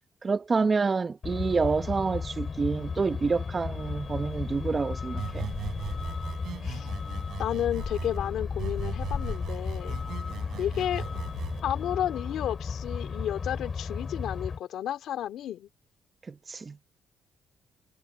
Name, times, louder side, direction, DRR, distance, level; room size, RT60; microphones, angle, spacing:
voice 1, 0.2-5.5 16.3-16.8, right 4 dB, 35° right, 1.1 m, -28 dB
Truck, 1.2-14.6, left 5 dB, 40° left, 6.4 m, -34 dB
sound 1, 2.7-12.5, left 8 dB, 60° left, 7.7 m, -53 dB
sound 2, 5.2-8.2 8.6-11.6, right 11 dB, 75° right, 7.2 m, -39 dB
voice 2, 7.4-9.9 10.6-11.1 11.6-15.7, left 11 dB, 75° left, 2.5 m, -32 dB
cardioid pair, 90°, 0 cm